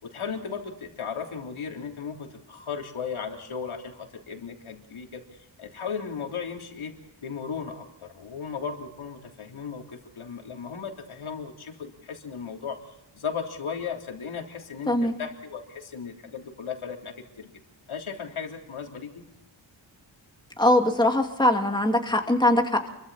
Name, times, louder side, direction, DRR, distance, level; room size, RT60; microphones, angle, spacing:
voice 1, 0.0-6.9 7.2-12.8 13.1-17.5 17.9-19.2, left 6 dB, 85° left, 2 dB, 3.7 m, -36 dB
voice 2, 20.6-22.9, left 1 dB, 10° left, 3 dB, 2.5 m, -22 dB
29.0 x 23.5 x 4.2 m, 0.92 s
wide cardioid pair, 175°, 47 cm